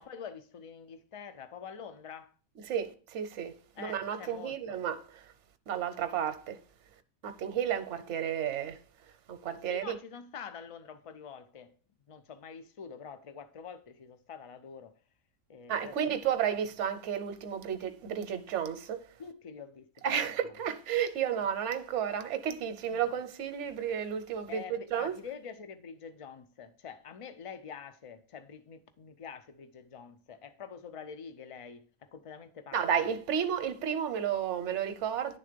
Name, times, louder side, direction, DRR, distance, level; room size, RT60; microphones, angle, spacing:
voice 1, 0.0-2.3 3.7-4.8 9.7-11.7 12.1-15.0 15.5-16.2 19.2-20.1 21.4-21.5 22.9-23.1 24.5-33.1, left 6 dB, 60° left, 0.3 m, -46 dB
voice 2, 2.7-5.3 5.7-6.6 7.2-8.8 9.3-9.9 15.7-19.1 20.0-25.2 32.7-35.4, right 8 dB, 60° right, 1.0 m, -32 dB
10.5 x 3.7 x 5.1 m
omnidirectional pair, 1.5 m